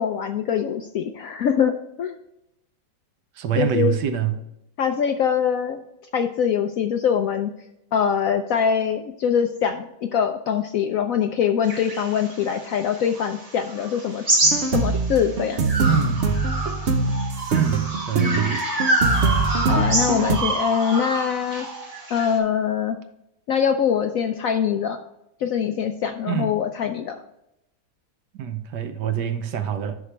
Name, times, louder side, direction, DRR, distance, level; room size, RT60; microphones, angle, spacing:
voice 1, 0.0-1.7 2.0-2.2 3.6-4.0 4.8-5.8 6.1-7.5 7.9-14.2 14.7-15.7 19.7-21.7 22.1-23.0 23.5-25.0 25.4-27.2, left 7 dB, 70° left, 7 dB, 0.8 m, -23 dB
voice 2, 3.4-4.4 15.9-16.4 17.5-18.6 26.3-26.5 28.3-30.0, right 8 dB, 75° right, 8 dB, 1.4 m, -25 dB
sound 1, 11.7-15.2 15.7-22.4, right 2 dB, 20° right, 1.4 m, -26 dB
sound 2, 14.4-20.4, right 3 dB, 55° right, 0.8 m, -23 dB
9.7 x 6.4 x 3.3 m, 0.85 s
omnidirectional pair, 1.9 m